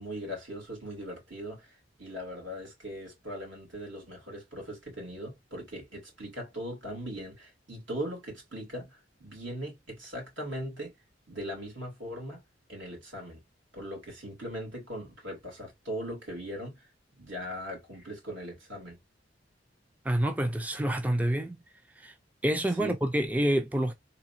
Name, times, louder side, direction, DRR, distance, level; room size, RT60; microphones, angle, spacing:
voice 1, 0.0-10.9 11.3-12.4 12.7-13.4 13.7-16.9 17.2-19.0 22.7-22.9, equal, 75° right, 2.6 m, -39 dB
voice 2, 20.0-21.6 22.0-22.1 22.4-23.9, right 1 dB, 10° right, 0.4 m, -27 dB
3.9 x 3.0 x 2.6 m
head